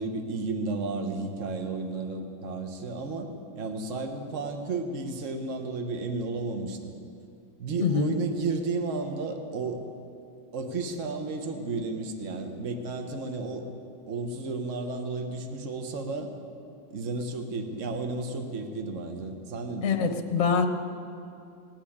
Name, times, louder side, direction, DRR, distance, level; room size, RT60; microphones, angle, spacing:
voice 1, 0.0-6.9 7.6-9.8 10.5-13.7 14.1-16.3 16.9-20.1, right 3 dB, 45° right, 5 dB, 1.4 m, -33 dB
voice 2, 7.8-8.1 19.8-20.7, left 6 dB, 45° left, 5 dB, 1.2 m, -24 dB
18.5 x 9.1 x 8.6 m, 2.5 s
omnidirectional pair, 2.1 m